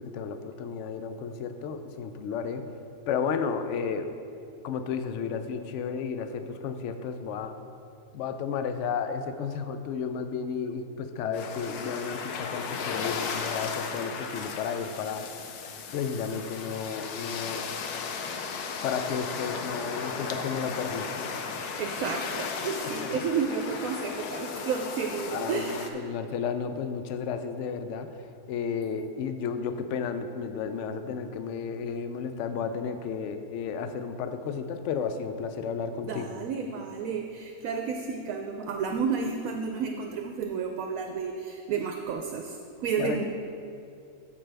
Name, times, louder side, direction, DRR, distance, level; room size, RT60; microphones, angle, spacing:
voice 1, 0.0-2.7 3.1-4.1 4.6-7.6 8.1-15.3 15.9-17.7 18.8-21.1 22.8-23.3 25.3-28.2 28.5-36.4 43.0-43.2, left 6 dB, 65° left, 9 dB, 0.7 m, -33 dB
sound 1, 11.3-25.9, left 5 dB, 85° left, 1.2 m, -35 dB
voice 2, 21.8-26.0 36.0-43.2, right 6 dB, 70° right, 3 dB, 1.0 m, -31 dB
14.0 x 5.4 x 3.4 m, 2.6 s
omnidirectional pair, 1.6 m